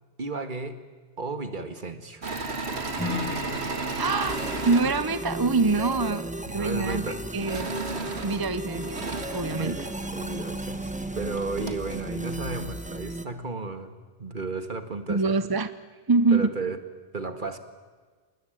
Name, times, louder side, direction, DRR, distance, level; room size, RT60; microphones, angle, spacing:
voice 1, 0.2-0.8 1.2-2.2 6.5-7.2 9.5-15.4 16.3-16.8 17.1-17.6, right 3 dB, 50° right, 9 dB, 2.0 m, -34 dB
Engine / Mechanisms, 2.2-6.0 7.4-10.3 11.0-11.1 11.4-11.9, right 3 dB, 90° right, 2.3 m, -34 dB
Acoustic guitar / Strum, 3.0-7.0, left 2 dB, 10° left, 5.9 m, -38 dB
voice 2, 4.0-4.4 4.6-7.0 7.3-7.7 8.2-9.9 15.1-15.7 16.1-16.5, right 3 dB, 25° right, 12 dB, 0.7 m, -25 dB
sound 1, 4.3-13.3, right 1 dB, 5° right, 1.2 m, -35 dB
28.0 x 19.5 x 9.2 m, 1.5 s
omnidirectional pair, 1.1 m